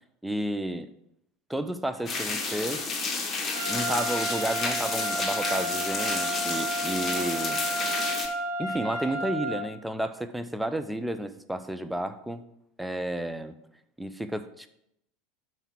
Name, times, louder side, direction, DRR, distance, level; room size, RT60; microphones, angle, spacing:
voice 1, 0.2-0.9 1.5-2.9 3.7-7.6 8.6-12.4 12.8-13.5 14.0-14.7, right 1 dB, 5° right, 9 dB, 0.6 m, -32 dB
sound 1, 2.1-8.3, left 3 dB, 20° left, 1.6 m, -31 dB
Trumpet, 3.5-9.6, right 1 dB, 75° right, 1.6 m, -32 dB
9.1 x 4.6 x 6.0 m, 0.77 s
figure-of-eight pair, 75°, 0 cm